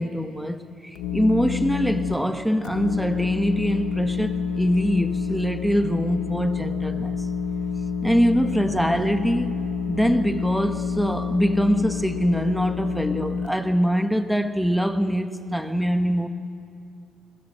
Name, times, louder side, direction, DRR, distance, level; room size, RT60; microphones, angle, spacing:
voice 1, 0.0-7.3 8.0-9.6 9.9-16.3, equal, ahead, 1.4 m, -23 dB
sound 1, 1.0-2.1 2.6-13.5, left 6 dB, 85° left, 1.5 m, -28 dB
21.5 x 21.0 x 7.8 m
supercardioid pair, 75°, 0 cm